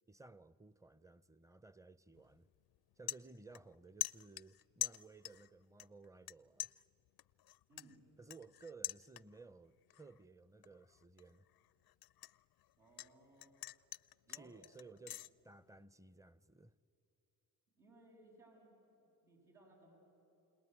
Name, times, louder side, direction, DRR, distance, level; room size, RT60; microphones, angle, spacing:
voice 1, 0.1-2.5 3.0-6.7 8.2-11.4 14.3-16.7, right 3 dB, 10° right, 0.6 m, -58 dB
sound 1, 2.1-2.4 2.7-3.7 4.0-5.5 5.8-6.3 6.6-9.5 9.9-10.2 10.6-13.1 13.4-15.3, left 15 dB, 65° left, 0.5 m, -44 dB
voice 2, 7.7-8.0 12.8-13.6 14.3-14.5 17.8-20.0, right 2 dB, 80° right, 7.4 m, -64 dB
29.0 x 19.0 x 9.6 m
supercardioid pair, 50°, 41 cm